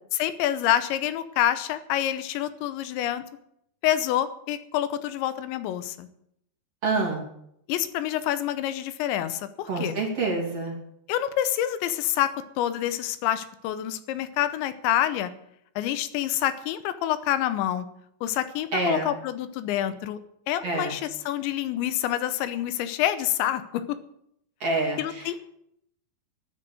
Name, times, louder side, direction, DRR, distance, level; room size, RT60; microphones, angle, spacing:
voice 1, 0.1-3.2 3.8-6.1 7.7-9.9 11.1-12.3 12.6-15.3 15.8-17.9 18.2-20.2 20.5-24.0 25.0-25.4, left 12 dB, 85° left, 12 dB, 3.1 m, -27 dB
voice 2, 6.8-7.2 9.7-10.8 18.7-19.1 20.6-20.9 24.6-25.3, right 3 dB, 40° right, 0 dB, 3.0 m, -27 dB
12.5 x 10.0 x 7.8 m, 0.74 s
omnidirectional pair, 5.2 m